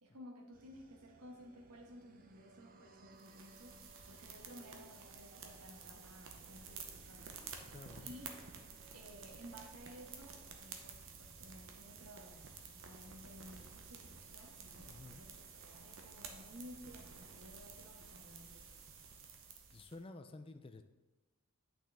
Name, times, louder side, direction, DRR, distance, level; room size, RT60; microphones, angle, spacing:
voice 1, 0.0-3.8 4.0-7.4 8.0-8.3 8.9-18.7, equal, 85° right, 2 dB, 1.3 m, -56 dB
sound 1, 0.5-12.1, right 2 dB, 40° right, 0.6 m, -62 dB
sound 2, 3.2-20.0, right 5 dB, 60° right, 0.9 m, -52 dB
voice 2, 7.7-8.1 14.9-15.2 19.7-20.8, left 2 dB, 25° left, 8 dB, 0.4 m, -51 dB
8.8 x 6.1 x 3.5 m, 1.1 s
head